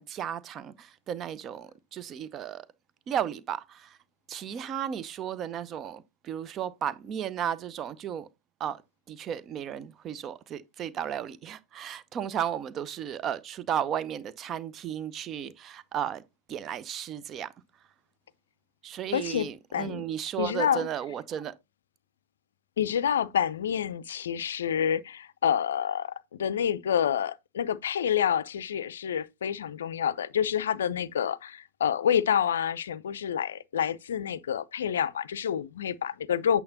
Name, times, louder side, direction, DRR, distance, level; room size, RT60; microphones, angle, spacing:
voice 1, 0.0-2.7 3.1-4.0 4.3-8.3 8.6-8.8 9.1-16.2 16.5-17.5 18.8-21.5, right 9 dB, 30° right, 0.6 m, -34 dB
voice 2, 19.1-20.0 20.4-20.9 22.8-36.6, left 9 dB, 65° left, 0.5 m, -28 dB
8.6 x 6.9 x 2.7 m
figure-of-eight pair, 90°, 0 cm